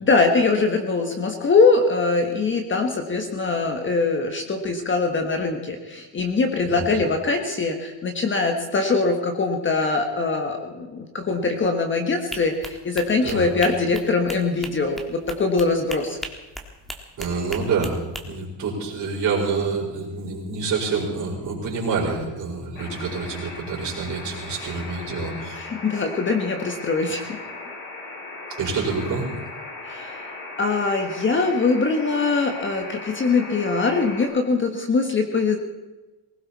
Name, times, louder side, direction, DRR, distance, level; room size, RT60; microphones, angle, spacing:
voice 1, 0.0-16.2 24.6-24.7 25.6-27.4 29.8-30.2 30.6-35.6, left 3 dB, 25° left, 4 dB, 1.4 m, -22 dB
sound 1, 12.3-18.2, right 1 dB, ahead, 1.5 m, -37 dB
voice 2, 17.2-18.0 18.2-25.6 28.5-29.3, right 4 dB, 40° right, -3 dB, 5.2 m, -27 dB
sound 2, 22.8-34.3, left 2 dB, 80° left, 7.2 m, -37 dB
20.0 x 17.5 x 4.2 m, 1.1 s
cardioid pair, 145°, 47 cm